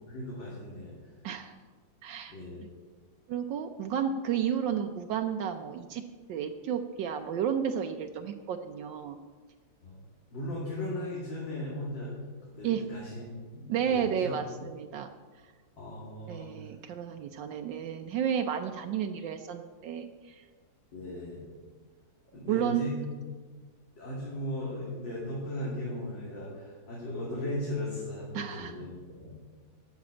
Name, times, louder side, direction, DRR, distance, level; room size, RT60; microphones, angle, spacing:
voice 1, 0.1-1.1 2.3-2.6 9.8-10.0 10.3-12.1 12.4-13.3 13.5-14.3 15.8-16.5 20.9-21.4 22.3-22.9 24.0-29.3, left 1 dB, 85° left, -6 dB, 3.2 m, -37 dB
voice 2, 1.2-1.6 2.0-2.7 3.3-6.0 6.3-9.2 12.6-12.8 13.7-15.1 16.3-20.4 22.5-22.8 28.3-28.7, right 8 dB, 80° right, 5 dB, 1.4 m, -32 dB
12.5 x 6.1 x 8.6 m, 1.5 s
omnidirectional pair, 2.0 m